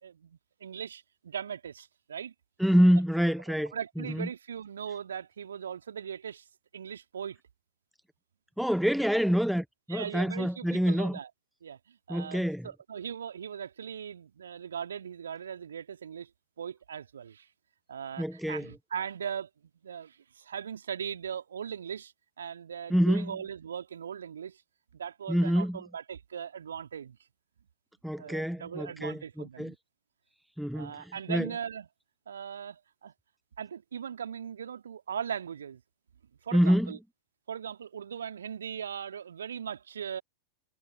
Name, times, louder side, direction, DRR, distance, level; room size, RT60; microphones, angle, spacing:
voice 1, 0.0-2.3 3.7-6.4 6.7-7.4 9.9-11.3 11.6-16.3 16.6-17.5 17.9-19.5 19.8-24.6 24.9-27.2 28.2-29.8 30.7-31.9 32.3-33.1 33.6-35.8 36.4-37.0 37.5-40.2, right 8 dB, 65° right, 2.1 m, -39 dB
voice 2, 2.6-4.3 8.6-11.2 12.1-12.7 18.2-18.7 22.9-23.3 25.3-25.8 28.0-29.7 30.6-30.9 31.3-31.5 36.5-36.9, equal, ahead, 0.8 m, -26 dB
figure-of-eight pair, 90°, 0 cm